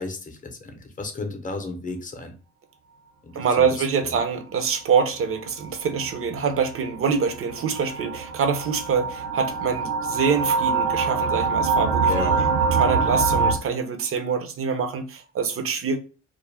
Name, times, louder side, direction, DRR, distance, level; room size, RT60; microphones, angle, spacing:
voice 1, 0.0-2.4 3.2-4.2 12.0-12.5, left 3 dB, 25° left, 0.7 m, -33 dB
voice 2, 3.3-12.3 12.7-16.0, right 6 dB, 50° right, 0.6 m, -25 dB
sound 1, 5.3-13.5, right 4 dB, 90° right, 0.6 m, -25 dB
2.4 x 2.1 x 3.3 m
cardioid pair, 90°, 30 cm